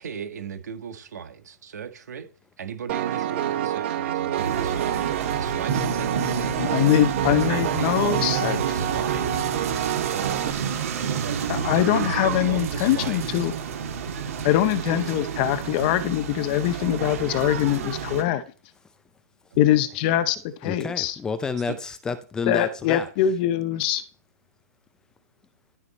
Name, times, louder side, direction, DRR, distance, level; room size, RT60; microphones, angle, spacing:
voice 1, 0.0-2.3 2.6-7.0 7.3-9.5 10.1-10.4 11.1-13.4 14.6-15.0 19.5-19.6 20.1-20.2 21.7-21.8, right 7 dB, 80° right, 1.6 m, -36 dB
Piano, 2.9-10.5, right 11 dB, 40° right, 0.8 m, -28 dB
sound 1, 4.4-18.2, right 6 dB, 60° right, 2.3 m, -29 dB
voice 2, 6.6-8.6 11.5-13.5 14.4-18.4 19.6-21.1 22.5-24.0, left 12 dB, 30° left, 0.9 m, -23 dB
voice 3, 20.6-23.1, left 5 dB, 10° left, 0.4 m, -30 dB
12.0 x 5.0 x 4.2 m
hypercardioid pair, 160°, 9 cm